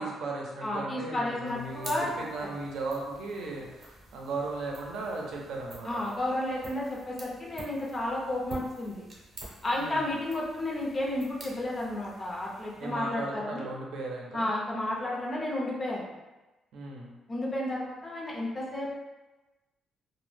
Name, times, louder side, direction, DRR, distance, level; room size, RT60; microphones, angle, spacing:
voice 1, 0.0-6.0 9.7-10.0 12.8-14.5 16.7-17.1, right 3 dB, 80° right, -2 dB, 0.6 m, -37 dB
voice 2, 0.6-2.1 2.4-2.5 5.8-9.1 9.6-13.6 14.3-16.1 17.3-18.9, left 1 dB, 30° left, -3 dB, 0.6 m, -32 dB
sound 1, 1.4-13.1, right 2 dB, 50° right, 0.7 m, -49 dB
2.1 x 2.1 x 3.2 m, 1.1 s
cardioid pair, 90°, 0 cm